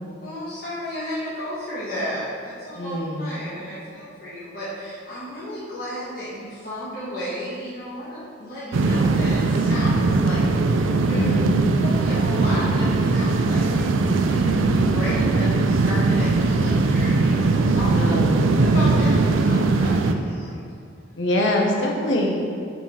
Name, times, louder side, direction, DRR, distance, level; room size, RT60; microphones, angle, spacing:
voice 1, 0.2-11.3 11.8-18.1 18.7-20.7, equal, 50° left, -11 dB, 1.5 m, -33 dB
voice 2, 2.7-3.2 11.1-11.5 17.9-18.5 21.2-22.4, left 1 dB, 75° left, 0 dB, 1.0 m, -23 dB
sound 1, 8.7-20.1, right 3 dB, 90° right, 0.4 m, -20 dB
5.5 x 5.5 x 4.3 m, 2.4 s
head